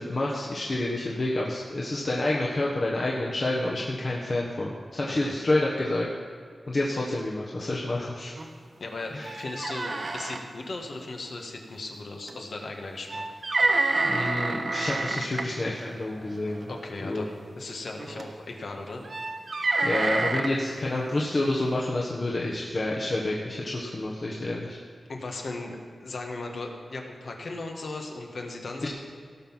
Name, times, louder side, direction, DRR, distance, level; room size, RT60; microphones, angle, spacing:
voice 1, 0.0-6.1 6.7-8.3 9.1-9.4 14.0-16.7 17.0-17.3 19.8-24.8 28.8-28.9, left 2 dB, 50° left, -4 dB, 1.4 m, -28 dB
voice 2, 5.1-5.4 8.8-13.2 16.7-19.0 25.1-28.9, left 2 dB, 70° left, 2 dB, 1.6 m, -37 dB
sound 1, 8.4-8.5 8.8-8.9 9.2-10.4 12.3-12.4 13.1-15.4 16.5-16.8 18.0-18.3 19.0-20.5, right 2 dB, 55° right, 0.9 m, -28 dB
18.0 x 6.1 x 5.7 m, 2.1 s
cardioid pair, 65°, 0 cm